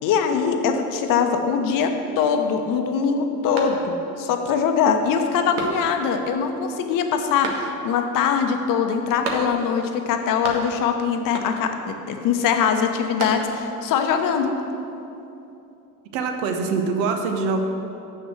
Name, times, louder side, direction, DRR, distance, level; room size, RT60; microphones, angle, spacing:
voice 1, 0.0-14.5, left 6 dB, 45° left, 5 dB, 1.1 m, -22 dB
sound 1, 3.5-4.2 4.6-4.7 5.5-6.2 7.4-8.1 9.2-9.8 10.1-10.9 11.3-11.8 12.8-13.8, right 3 dB, 70° right, 1.5 m, -33 dB
voice 2, 16.1-17.6, right 4 dB, 55° right, 4 dB, 1.3 m, -24 dB
6.7 x 6.6 x 7.8 m, 2.9 s
hypercardioid pair, 75°, 45 cm